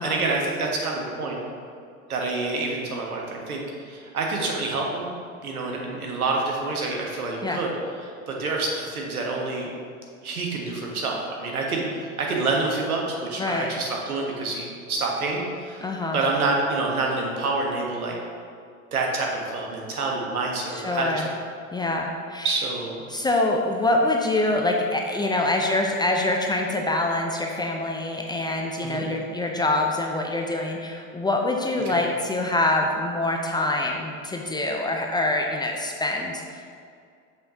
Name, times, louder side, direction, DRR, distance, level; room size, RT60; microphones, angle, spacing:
voice 1, 0.0-1.4 2.1-5.1 5.4-7.7 8.3-9.7 10.2-15.8 16.1-18.1 18.9-21.2 22.4-23.0 28.8-29.0 31.8-32.0, right 3 dB, 80° right, -1 dB, 1.4 m, -27 dB
voice 2, 15.8-16.2 20.7-21.3 21.7-22.5 23.1-36.6, left 2 dB, 10° left, 1 dB, 0.5 m, -25 dB
6.9 x 5.9 x 3.8 m, 2.3 s
figure-of-eight pair, 80°, 43 cm